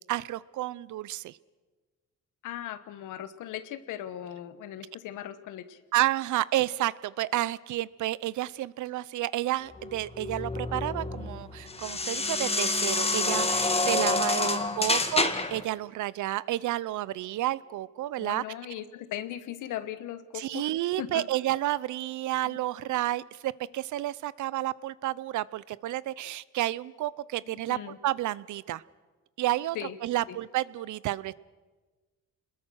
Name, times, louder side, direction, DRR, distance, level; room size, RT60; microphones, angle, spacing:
voice 1, 0.1-1.4 5.9-18.4 20.3-27.8 28.0-28.8 29.4-29.8 30.0-31.3, right 15 dB, 75° right, 20 dB, 0.7 m, -30 dB
voice 2, 2.4-5.8 14.1-14.9 18.2-21.2 22.4-22.6 27.7-28.0 29.7-30.0 30.3-30.4, left 11 dB, 85° left, 12 dB, 1.3 m, -39 dB
sound 1, 9.8-15.6, left 3 dB, 20° left, 1.7 m, -28 dB
27.0 x 21.0 x 6.4 m, 1.3 s
cardioid pair, 90°, 30 cm